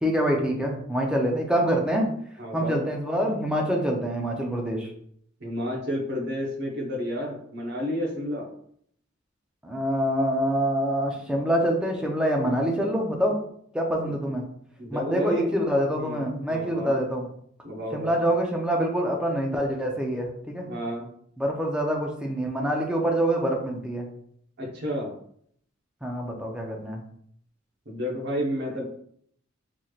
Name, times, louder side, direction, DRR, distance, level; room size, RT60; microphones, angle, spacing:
voice 1, 0.0-2.0 2.5-4.9 9.6-13.4 13.7-14.4 14.9-17.3 17.9-20.7 21.4-24.1 26.0-27.0, equal, 5° right, 0 dB, 0.6 m, -25 dB
voice 2, 2.4-2.8 5.4-8.5 14.0-14.2 14.8-15.5 15.9-17.0 17.6-18.2 20.7-21.1 24.6-25.1 27.9-28.8, equal, 55° right, -1 dB, 1.0 m, -31 dB
4.2 x 3.1 x 2.4 m, 0.65 s
head